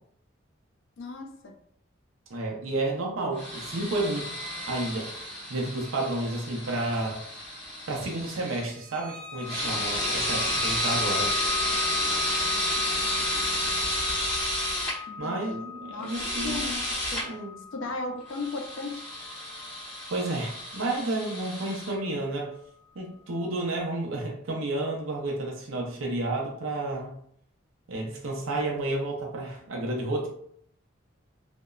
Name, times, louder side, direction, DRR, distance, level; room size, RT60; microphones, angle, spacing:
voice 1, 1.0-1.5 15.1-15.6 15.9-17.2 17.7-19.0, left 3 dB, 65° left, 3 dB, 0.4 m, -36 dB
voice 2, 2.3-4.3 4.7-5.1 5.5-7.2 7.9-11.3 15.2-16.6 17.2-17.6 20.1-22.5 23.0-27.1 27.9-30.3, right 2 dB, 80° right, -1 dB, 0.5 m, -31 dB
sound 1, 3.4-8.6 9.4-14.9 16.0-17.2 18.3-21.9, left 1 dB, 10° left, 1.2 m, -31 dB
sound 2, 8.7-21.2, left 6 dB, 15° right, 0.5 m, -38 dB
2.8 x 2.1 x 2.3 m, 0.66 s
head